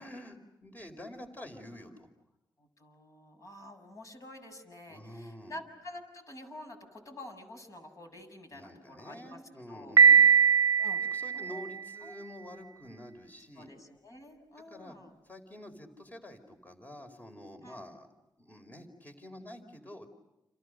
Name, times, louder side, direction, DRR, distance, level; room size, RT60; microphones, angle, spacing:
voice 1, 0.0-2.1 4.9-5.5 8.5-10.2 10.8-13.7 14.7-15.0 15.2-18.1 18.4-20.1, left 1 dB, 20° left, 5 dB, 4.6 m, -48 dB
voice 2, 2.6-9.4 9.7-10.0 10.8-11.0 11.3-11.7 12.0-12.1 13.5-15.1 17.6-17.9, left 1 dB, 45° left, 5 dB, 7.1 m, -48 dB
Piano, 10.0-11.9, right 6 dB, 50° right, 0.9 m, -21 dB
30.0 x 29.5 x 6.6 m, 0.91 s
cardioid pair, 75°, 8 cm